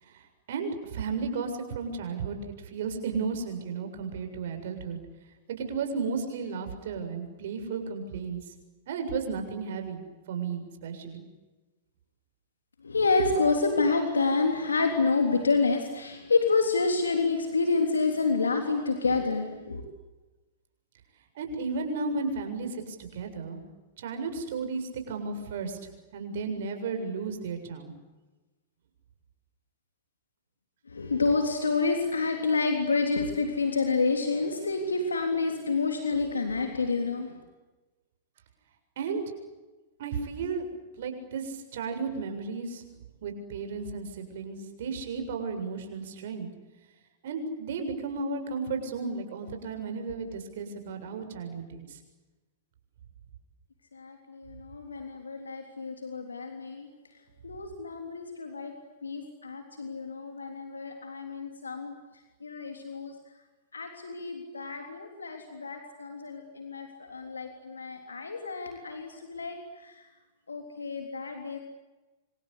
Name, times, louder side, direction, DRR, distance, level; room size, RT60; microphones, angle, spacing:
voice 1, 0.0-5.0 5.5-8.4 8.9-10.0 10.3-11.2 21.3-23.6 24.0-27.9 39.0-39.2 40.0-40.7 41.0-42.8 43.2-46.5 47.2-52.0, right 4 dB, 65° right, 6 dB, 7.3 m, -34 dB
voice 2, 12.8-19.8 30.9-37.4 53.9-56.9 57.4-58.7 59.0-61.9 62.4-63.1 63.7-69.6 69.8-69.9 70.5-71.6, left 4 dB, 85° left, 4 dB, 3.5 m, -28 dB
27.0 x 26.5 x 8.3 m, 1.2 s
hypercardioid pair, 105°, 0 cm